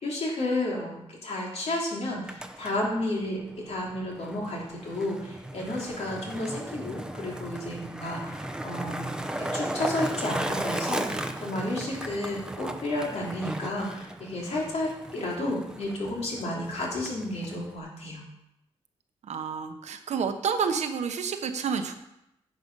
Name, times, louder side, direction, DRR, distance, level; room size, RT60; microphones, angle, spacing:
voice 1, 0.0-18.2, left 1 dB, 70° left, -3 dB, 3.1 m, -32 dB
Skateboard, 2.1-17.8, right 1 dB, 5° right, 0.7 m, -36 dB
voice 2, 19.2-21.9, right 6 dB, 90° right, 7 dB, 1.0 m, -29 dB
10.0 x 6.6 x 5.4 m, 0.84 s
wide cardioid pair, 110°, 11 cm